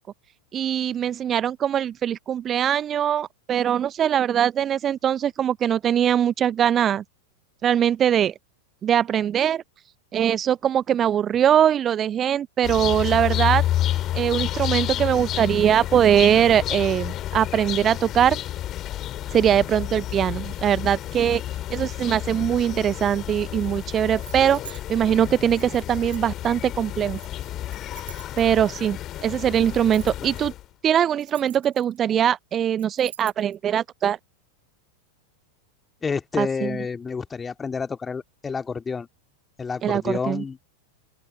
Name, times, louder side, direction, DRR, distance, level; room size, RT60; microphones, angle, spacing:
voice 1, 0.5-7.0 7.6-8.3 8.8-9.6 10.1-13.6 14.1-18.4 19.3-21.4 21.7-27.2 28.4-30.5 30.8-34.2 36.4-36.7 39.8-40.4, right 9 dB, 25° right, 0.6 m, -22 dB
sound 1, 12.6-30.7, left 13 dB, 30° left, 2.9 m, -30 dB
sound 2, 24.1-24.8 25.6-26.5 27.1-28.7 29.6-30.4 31.0-32.1 32.8-33.6, right 9 dB, 65° right, 7.3 m, -45 dB
voice 2, 36.0-39.1 39.6-40.7, left 5 dB, 15° left, 2.4 m, -29 dB
open air
figure-of-eight pair, 90°, 0 cm